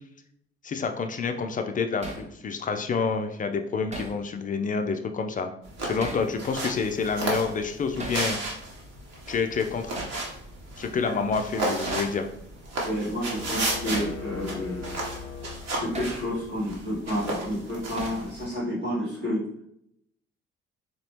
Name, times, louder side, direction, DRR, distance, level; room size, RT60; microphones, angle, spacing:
voice 1, 0.6-5.5 5.8-8.4 9.3-9.9 10.8-12.3, left 5 dB, 25° left, 6 dB, 0.4 m, -28 dB
Hammer, 2.0-2.3 3.9-4.2 6.0-6.3 8.0-8.3 10.0-10.2 11.9-12.1 13.9-14.2 15.9-16.2 18.0-18.3, right 2 dB, 20° right, 0.8 m, -36 dB
sound 1, 5.6-18.4, right 2 dB, 55° right, 1.2 m, -34 dB
voice 2, 12.8-14.8 15.7-19.4, equal, 90° right, -10 dB, 1.5 m, -30 dB
sound 2, 13.3-16.3, left 5 dB, 80° left, 0.5 m, -40 dB
4.0 x 2.9 x 3.0 m, 0.73 s
figure-of-eight pair, 45°, 32 cm